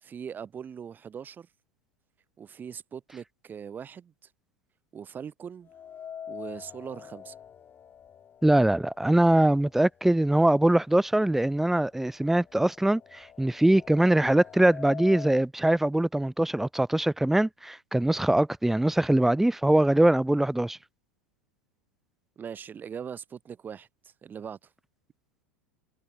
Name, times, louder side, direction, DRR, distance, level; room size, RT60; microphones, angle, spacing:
voice 1, 0.0-1.5 2.4-4.1 4.9-5.7 6.3-7.3 22.4-24.7, right 7 dB, 25° right, 4.1 m, -41 dB
sound 1, 5.7-9.7 10.1-10.2 11.1-11.2 11.6-15.5, left 8 dB, 25° left, 6.7 m, -45 dB
voice 2, 8.4-20.8, right 1 dB, 5° right, 0.7 m, -22 dB
figure-of-eight pair, 90°, 8 cm